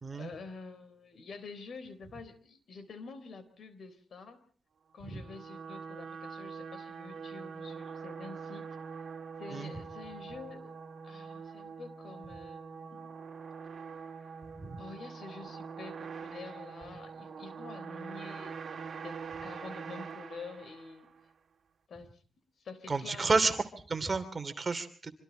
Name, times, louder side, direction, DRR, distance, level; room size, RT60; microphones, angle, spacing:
voice 1, 0.1-4.4 4.9-8.7 9.4-10.8 11.0-13.1 14.8-21.1 21.9-22.2 22.6-23.5, left 4 dB, 60° left, 13 dB, 3.8 m, -48 dB
sound 1, 5.0-21.3, right 6 dB, 50° right, 2.9 m, -44 dB
voice 2, 22.9-23.6 23.9-25.1, right 4 dB, 30° right, 8 dB, 3.0 m, -31 dB
26.0 x 25.5 x 4.0 m, 0.44 s
cardioid pair, 115°, 0 cm